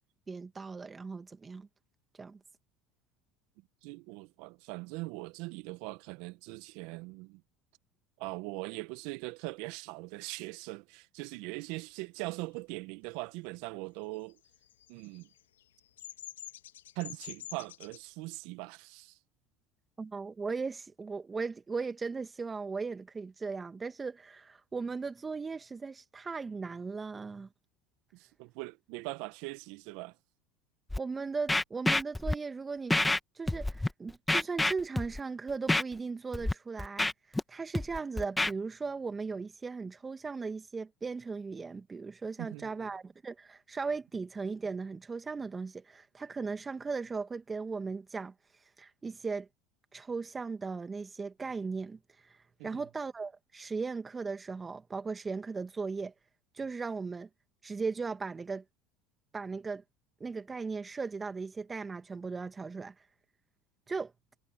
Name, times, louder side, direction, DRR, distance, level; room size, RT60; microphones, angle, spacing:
voice 1, 0.3-1.7 2.2-2.4 20.0-27.5 31.0-33.0 33.4-48.3 48.8-49.5 49.9-52.0 52.6-56.1 56.5-57.3 57.6-58.6 59.3-59.8 60.2-62.9 63.9-64.1, right 4 dB, 25° right, 2.1 m, -37 dB
voice 2, 3.8-7.4 8.2-14.4 14.9-15.3 16.9-19.2 28.1-30.1 42.4-42.9 52.6-52.8, right 24 dB, 70° right, 1.6 m, -41 dB
Bird vocalization bird call bird song, 14.3-18.0, left 12 dB, 85° left, 2.3 m, -47 dB
Scratching (performance technique), 30.9-31.0 31.5-32.3 32.9-33.2 33.5-33.9 34.3-35.2 35.7-35.8 36.3-36.5 36.8-37.4 37.7-38.5, left 2 dB, 10° left, 1.7 m, -28 dB
hypercardioid pair, 75°, 0 cm